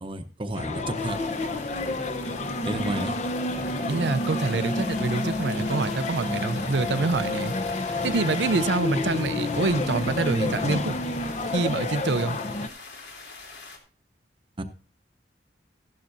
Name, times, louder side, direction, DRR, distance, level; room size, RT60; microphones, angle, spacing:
voice 1, 0.0-1.2 2.6-3.1 14.6-14.7, right 1 dB, 30° right, 0.8 m, -31 dB
sound 1, 0.5-12.7, left 2 dB, 40° left, 0.8 m, -29 dB
sound 2, 1.0-13.8, left 4 dB, 70° left, 3.0 m, -44 dB
voice 2, 3.9-7.5 8.0-11.0 11.5-12.4, right 3 dB, 75° right, 0.6 m, -26 dB
14.5 x 11.5 x 2.6 m
head